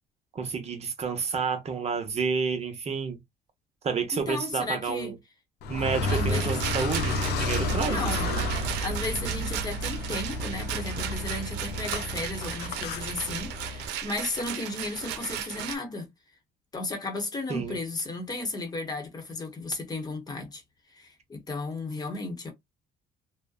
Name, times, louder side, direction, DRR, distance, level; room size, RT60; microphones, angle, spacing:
voice 1, 0.3-3.2 3.8-5.2 5.7-8.5 17.5-17.7, right 5 dB, 40° right, 0.8 m, -30 dB
voice 2, 4.1-5.1 6.1-6.6 7.8-8.3 8.8-16.1 16.7-20.6 20.9-22.5, left 2 dB, 25° left, 0.9 m, -34 dB
Car, 5.6-13.9, left 1 dB, 75° left, 0.6 m, -31 dB
Rattle, 6.1-15.8, right 9 dB, 90° right, 0.5 m, -36 dB
2.6 x 2.1 x 2.3 m
cardioid pair, 110°, 17 cm